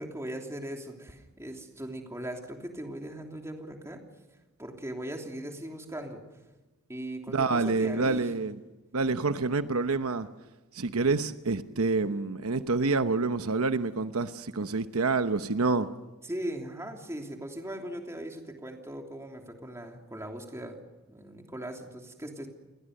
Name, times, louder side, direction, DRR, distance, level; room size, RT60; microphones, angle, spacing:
voice 1, 0.0-4.0 4.6-6.2 6.9-8.2 16.2-20.8 21.1-22.5, right 1 dB, 15° right, 2 dB, 3.1 m, -39 dB
voice 2, 7.3-8.6 8.9-10.3 10.7-15.9, right 3 dB, 80° right, 10 dB, 1.0 m, -27 dB
29.0 x 21.5 x 6.6 m, 1.1 s
head